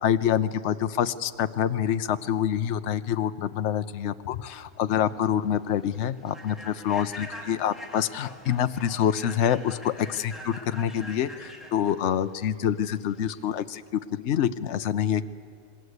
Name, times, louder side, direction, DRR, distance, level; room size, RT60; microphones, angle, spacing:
voice 1, 0.0-15.2, left 9 dB, 60° left, 11 dB, 1.0 m, -26 dB
Human voice / Train, 4.7-13.5, left 1 dB, ahead, 3.1 m, -45 dB
26.5 x 20.5 x 8.1 m, 2.3 s
omnidirectional pair, 1.5 m